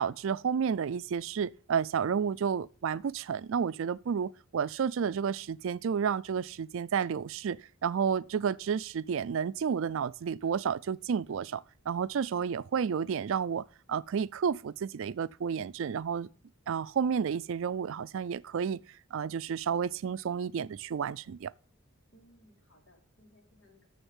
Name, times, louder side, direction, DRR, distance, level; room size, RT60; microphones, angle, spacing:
voice 1, 0.0-16.3 16.7-18.8 19.1-21.5, right 7 dB, 65° right, 0.4 m, -31 dB
voice 2, 22.1-23.9, equal, 65° left, 3.6 m, -61 dB
7.1 x 6.8 x 7.2 m
head